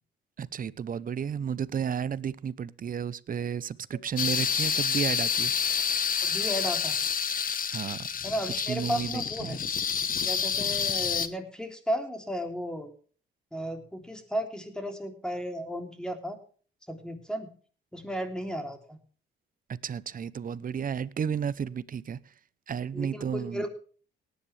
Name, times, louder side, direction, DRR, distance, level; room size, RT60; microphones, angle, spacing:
voice 1, 0.4-5.5 7.7-8.1 8.7-9.6 19.7-22.2 22.7-23.7, right 7 dB, 45° right, 0.8 m, -32 dB
sound 1, 4.2-11.3, left 7 dB, 45° left, 1.2 m, -28 dB
voice 2, 6.2-7.0 8.2-9.6 10.2-12.9 13.5-16.4 16.9-17.5 17.9-19.0 22.9-23.7, equal, 5° left, 3.2 m, -34 dB
18.5 x 10.0 x 3.4 m
cardioid pair, 90°, 20 cm